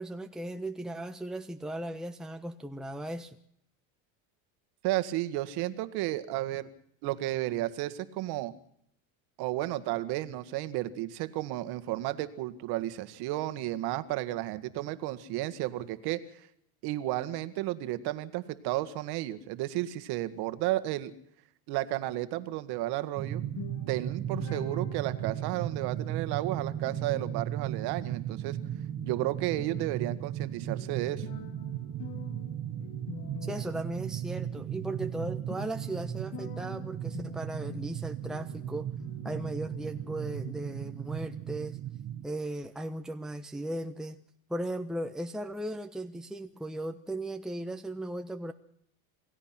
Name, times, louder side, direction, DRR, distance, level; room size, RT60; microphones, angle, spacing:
voice 1, 0.0-3.4 33.4-38.9 39.2-41.8 42.2-44.2 44.5-48.5, right 1 dB, ahead, 6 dB, 1.2 m, -37 dB
voice 2, 4.8-6.7 7.0-8.5 9.4-16.2 16.8-21.1 21.7-23.4 23.9-28.6 29.0-31.3, right 15 dB, 60° right, 12 dB, 1.9 m, -33 dB
sound 1, 23.2-42.3, right 11 dB, 40° right, 1.6 m, -36 dB
sound 2, 23.4-40.5, left 8 dB, 45° left, 2.5 m, -48 dB
28.5 x 17.0 x 6.1 m, 0.71 s
supercardioid pair, 110°, 42 cm